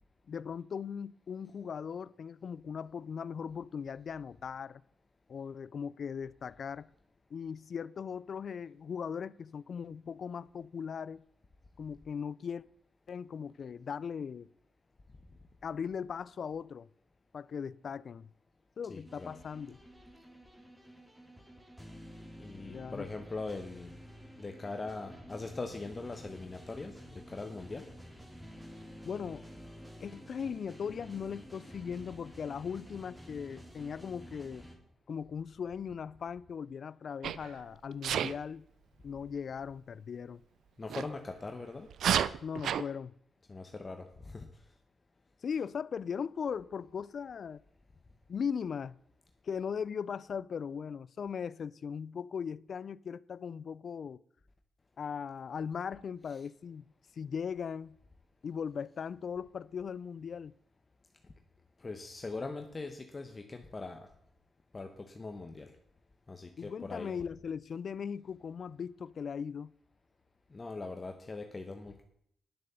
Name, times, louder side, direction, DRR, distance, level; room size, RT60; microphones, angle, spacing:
voice 1, 0.3-4.8 5.3-6.9 7.3-11.2 11.8-12.6 13.1-14.5 15.6-16.9 17.3-18.3 18.8-19.8 22.7-23.1 29.0-29.4 30.0-34.7 35.1-38.7 39.0-40.4 42.4-43.1 45.4-47.6 48.3-49.0 49.4-54.2 55.0-56.8 57.2-58.0 58.4-60.5 66.6-69.7, left 7 dB, 60° left, 0.3 m, -39 dB
voice 2, 18.9-19.3 22.4-23.9 24.4-27.9 40.8-41.9 43.5-44.5 56.2-56.4 61.8-64.1 64.7-65.7 66.3-67.2 70.5-72.0, left 3 dB, 30° left, 1.0 m, -41 dB
sound 1, 19.0-34.8, equal, 10° right, 2.3 m, -51 dB
Sneeze, 37.2-37.5 38.0-38.3 40.9-41.0 41.9-42.8, right 9 dB, 80° right, 0.4 m, -30 dB
10.5 x 7.7 x 6.9 m
cardioid pair, 95°, 0 cm